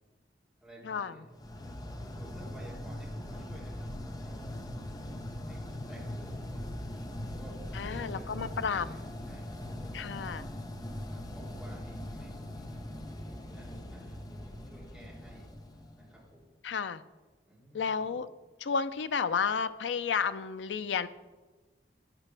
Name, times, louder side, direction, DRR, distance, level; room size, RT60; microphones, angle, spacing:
voice 1, 0.6-1.3 2.1-4.4 5.4-6.7 7.2-10.1 11.1-15.5 16.0-16.5 17.5-18.2, right 1 dB, ahead, -6 dB, 2.9 m, -54 dB
sound 1, 1.4-16.4, left 1 dB, 20° left, 0.8 m, -41 dB
voice 2, 7.7-8.9 9.9-10.5 16.6-17.0 17.7-18.3 18.6-21.1, left 6 dB, 90° left, 13 dB, 0.5 m, -32 dB
12.0 x 8.3 x 3.3 m, 1.2 s
head